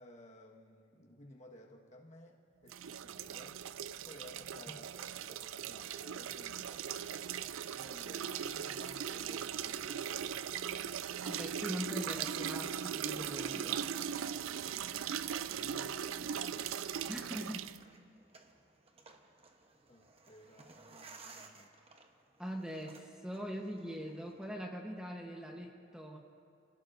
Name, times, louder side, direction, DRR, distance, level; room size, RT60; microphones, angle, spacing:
voice 1, 0.0-3.6 4.1-6.9 7.7-10.1 15.1-16.8 19.9-21.7, left 1 dB, 35° left, -1 dB, 1.6 m, -56 dB
sound 1, 2.7-17.8, right 8 dB, 80° right, 0.4 m, -39 dB
voice 2, 11.2-13.9 17.1-17.7 22.4-26.2, equal, 5° right, 0 dB, 1.1 m, -42 dB
sound 2, 15.4-24.5, right 3 dB, 30° right, 1.0 m, -60 dB
29.0 x 16.5 x 2.7 m, 2.4 s
head